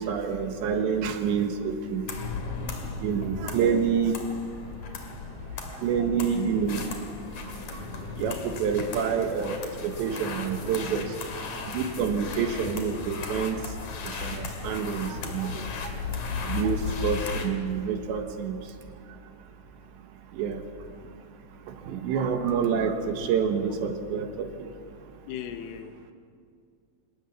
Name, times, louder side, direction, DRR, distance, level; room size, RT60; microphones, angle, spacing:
voice 1, 0.0-2.1 3.0-4.1 5.8-6.8 7.7-7.8 8.2-11.1 11.7-13.6 14.0-15.5 15.8-15.9 16.5-18.6 20.3-20.6 21.9-24.5, right 6 dB, 70° right, 5 dB, 3.3 m, -27 dB
sound 1, 2.1-17.5, left 5 dB, 45° left, 2.7 m, -36 dB
voice 2, 25.3-26.1, left 9 dB, 85° left, 7 dB, 3.9 m, -41 dB
26.0 x 20.0 x 7.2 m, 2.2 s
omnidirectional pair, 5.9 m